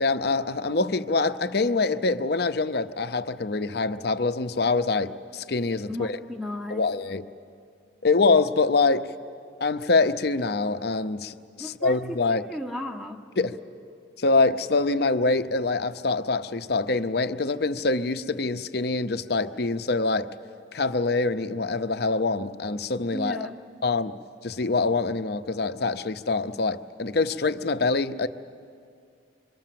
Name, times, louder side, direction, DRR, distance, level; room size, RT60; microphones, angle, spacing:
voice 1, 0.0-6.2 6.7-7.3 8.0-9.1 9.6-12.5 13.4-13.6 14.2-20.3 20.7-23.5 23.8-28.3, left 3 dB, 55° left, 0.7 m, -25 dB
voice 2, 5.9-6.8 11.6-12.0 12.3-13.2 23.1-23.6, left 1 dB, ahead, 0.7 m, -35 dB
26.5 x 23.5 x 7.7 m
head